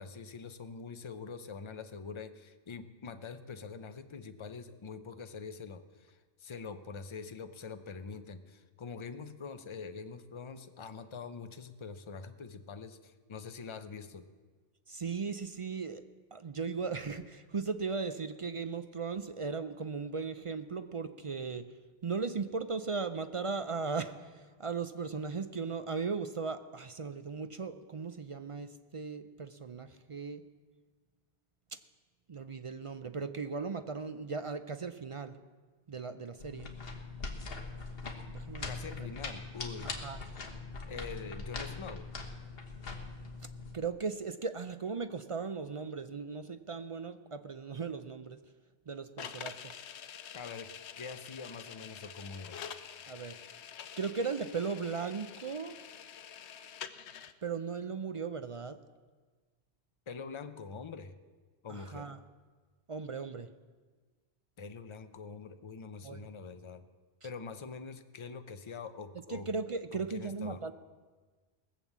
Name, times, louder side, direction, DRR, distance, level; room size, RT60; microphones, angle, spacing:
voice 1, 0.0-14.3 38.6-40.0 40.9-42.1 50.3-52.6 60.1-61.1 61.6-62.1 64.6-66.8 67.2-69.5 69.9-70.6, left 5 dB, 35° left, 9 dB, 0.6 m, -44 dB
voice 2, 14.9-16.0 16.3-21.6 22.0-30.4 31.7-31.8 32.3-35.4 35.9-36.7 38.3-38.7 39.0-39.1 39.8-40.2 43.4-48.4 48.9-49.8 53.1-53.4 54.0-55.8 57.4-58.8 61.7-62.2 62.9-63.5 66.0-66.3 69.3-70.7, right 5 dB, 45° right, 10 dB, 0.4 m, -37 dB
sound 1, 36.4-43.7, left 3 dB, 60° left, 1.6 m, -42 dB
sound 2, 49.2-57.3, left 8 dB, 85° left, 0.9 m, -47 dB
19.5 x 7.2 x 7.3 m, 1.4 s
omnidirectional pair, 1.1 m